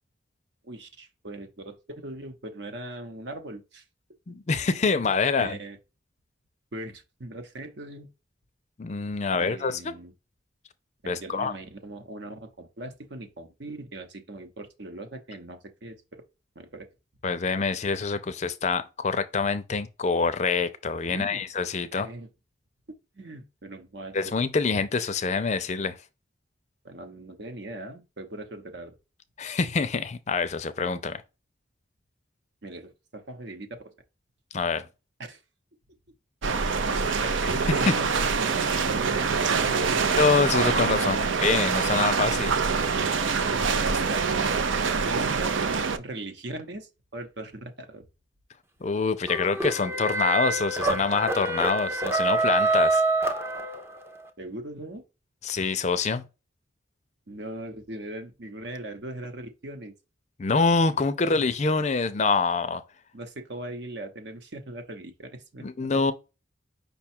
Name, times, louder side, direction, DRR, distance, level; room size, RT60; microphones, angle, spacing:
voice 1, 0.6-3.8 4.9-5.0 5.4-5.8 6.7-8.1 9.4-10.1 11.0-16.2 16.5-16.9 21.1-21.4 22.0-22.3 23.1-24.3 26.8-29.0 32.6-33.9 35.2-35.4 37.4-40.1 41.0-41.3 43.1-44.3 45.0-45.7 45.9-48.1 54.4-55.0 57.3-59.9 63.1-66.0, right 1 dB, 65° right, 0.9 m, -39 dB
voice 2, 4.3-5.6 8.8-9.8 11.1-11.5 17.2-22.1 24.1-26.0 29.4-31.2 34.5-34.9 36.7-36.8 37.9-38.0 38.7-38.8 40.2-41.2 41.4-42.6 48.8-53.0 55.4-56.2 60.4-62.8 65.6-66.1, left 4 dB, 35° left, 0.4 m, -25 dB
sound 1, 36.4-46.0, right 5 dB, 80° right, 0.5 m, -25 dB
sound 2, 49.2-54.1, right 2 dB, 15° right, 0.5 m, -26 dB
5.4 x 2.3 x 4.2 m
head